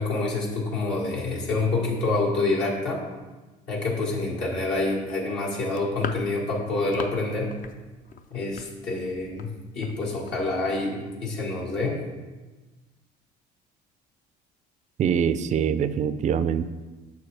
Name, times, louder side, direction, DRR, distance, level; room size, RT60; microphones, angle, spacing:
voice 1, 0.0-3.0 3.7-7.5 8.3-9.5 9.8-12.0, left 2 dB, 65° left, -3 dB, 1.8 m, -27 dB
sound 1, 5.6-7.2 7.5-7.8 8.0-9.5 9.8-10.0 10.3-10.4 10.7-10.8, left 6 dB, 45° left, 0.6 m, -38 dB
voice 2, 15.0-16.6, right 8 dB, 35° right, 13 dB, 0.4 m, -24 dB
6.6 x 6.3 x 3.4 m, 1.2 s
supercardioid pair, 75°, 20 cm